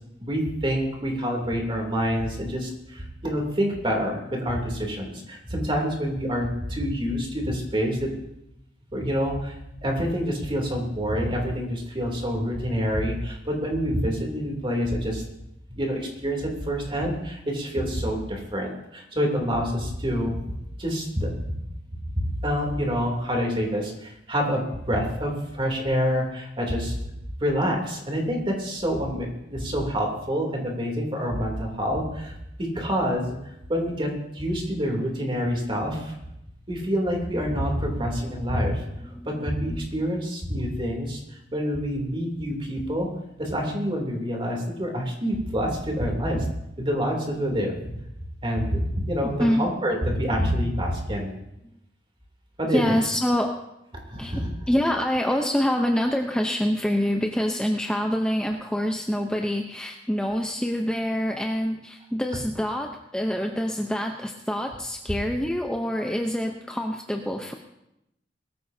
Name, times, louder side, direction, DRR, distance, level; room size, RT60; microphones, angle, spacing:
voice 1, 0.2-8.1 8.9-9.6 9.8-15.2 15.7-20.3 20.8-21.5 22.1-27.1 27.4-36.1 36.7-41.2 41.5-43.1 43.4-46.5 46.8-47.8 48.4-51.3 52.6-53.0 54.1-54.5, equal, 30° right, 0 dB, 3.0 m, -27 dB
voice 2, 38.0-38.3 39.1-40.0 49.2-49.7 52.6-53.6 54.2-54.3 54.7-67.5, equal, 5° left, 2 dB, 0.7 m, -26 dB
21.0 x 14.0 x 2.8 m, 0.84 s
head